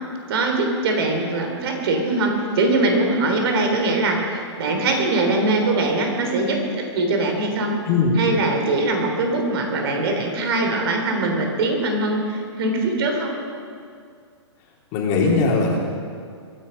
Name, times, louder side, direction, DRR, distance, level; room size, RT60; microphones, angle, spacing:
voice 1, 0.3-4.2 4.6-7.8 8.2-13.4, right 2 dB, 55° right, 3 dB, 3.4 m, -22 dB
voice 2, 7.9-8.2 14.9-15.8, left 4 dB, 35° left, -2 dB, 3.3 m, -19 dB
22.5 x 10.0 x 5.4 m, 2.2 s
hypercardioid pair, 140°, 15 cm